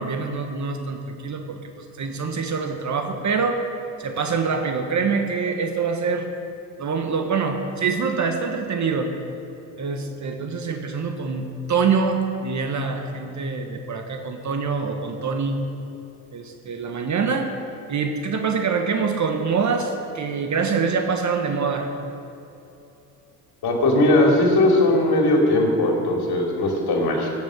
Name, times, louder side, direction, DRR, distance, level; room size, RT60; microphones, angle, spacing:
voice 1, 0.0-1.6 2.0-3.6 4.0-6.3 6.8-9.1 9.8-15.6 16.3-17.5 17.9-21.9, right 5 dB, 35° right, 5 dB, 1.4 m, -25 dB
voice 2, 23.6-27.3, left 1 dB, 50° left, 0 dB, 3.0 m, -19 dB
16.0 x 7.1 x 6.4 m, 2.8 s
hypercardioid pair, 60°, 49 cm